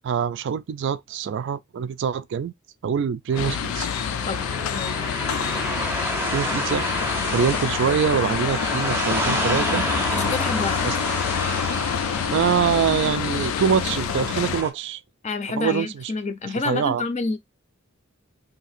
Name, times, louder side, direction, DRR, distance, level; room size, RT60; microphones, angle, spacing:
voice 1, 0.0-2.5 2.8-3.9 6.3-6.9 7.3-9.9 10.8-11.0 12.3-15.0 15.5-16.1 16.6-17.0, right 7 dB, 60° right, 0.3 m, -24 dB
sound 1, 3.3-14.7, right 1 dB, 10° right, 0.7 m, -30 dB
sound 2, 3.4-14.6, left 8 dB, 85° left, 0.3 m, -27 dB
voice 2, 4.3-5.0 10.1-10.9 15.2-17.4, left 3 dB, 35° left, 0.5 m, -28 dB
2.8 x 2.5 x 4.1 m
head